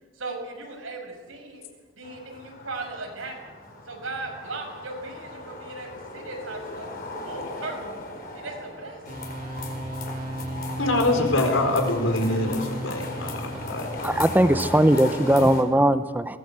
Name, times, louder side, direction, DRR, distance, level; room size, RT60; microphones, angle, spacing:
voice 1, 0.1-1.6 2.0-3.4 3.9-6.9 7.3-8.0 8.3-9.0, right 3 dB, 85° right, 2 dB, 6.5 m, -37 dB
sound 1, 2.0-15.6, left 2 dB, 50° left, 4.4 m, -37 dB
sound 2, 9.1-14.3, right 1 dB, 45° right, 2.5 m, -36 dB
voice 2, 10.8-14.1, left 2 dB, 85° left, 4 dB, 4.4 m, -25 dB
voice 3, 14.0-16.4, right 1 dB, 10° right, 11 dB, 0.7 m, -20 dB
21.5 x 19.0 x 8.2 m, 1.5 s
head